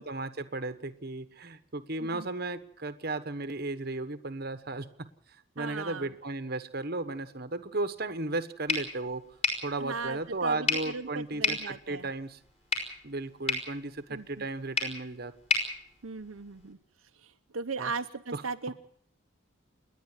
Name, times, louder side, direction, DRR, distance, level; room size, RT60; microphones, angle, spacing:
voice 1, 0.0-5.1 5.5-9.2 9.6-12.4 13.0-15.3 17.8-17.9 18.3-18.4, right 2 dB, 45° right, 11 dB, 1.2 m, -35 dB
voice 2, 5.6-6.1 9.8-12.1 14.1-14.5 16.0-16.8 17.2-18.7, right 4 dB, 75° right, 5 dB, 0.8 m, -38 dB
sound 1, 8.7-16.7, left 3 dB, 30° left, 5.2 m, -34 dB
29.5 x 10.5 x 9.0 m, 0.67 s
head